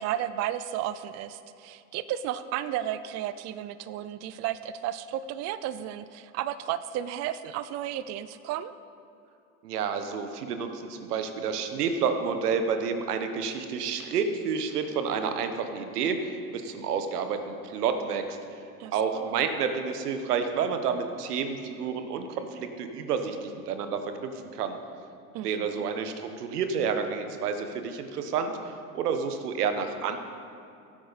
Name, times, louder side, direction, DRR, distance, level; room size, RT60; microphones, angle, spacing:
voice 1, 0.0-8.7 18.8-19.3 25.3-25.8, right 11 dB, 40° right, 14 dB, 0.4 m, -33 dB
voice 2, 9.6-16.2 16.5-18.4 18.9-24.8 25.4-28.6 28.9-30.2, right 6 dB, 90° right, 7 dB, 1.2 m, -29 dB
15.5 x 8.6 x 4.1 m, 2.6 s
hypercardioid pair, 95°, 45 cm